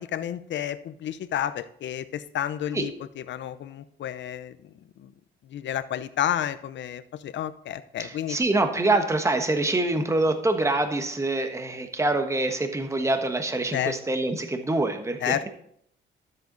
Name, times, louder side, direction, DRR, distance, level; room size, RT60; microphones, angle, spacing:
voice 1, 0.0-4.6 5.0-5.1 5.5-8.4 13.7-13.9 15.2-15.5, left 10 dB, 65° left, 13 dB, 0.8 m, -31 dB
voice 2, 8.0-15.5, right 2 dB, 15° right, 6 dB, 1.3 m, -25 dB
13.0 x 7.8 x 4.0 m, 0.67 s
cardioid pair, 90°, 20 cm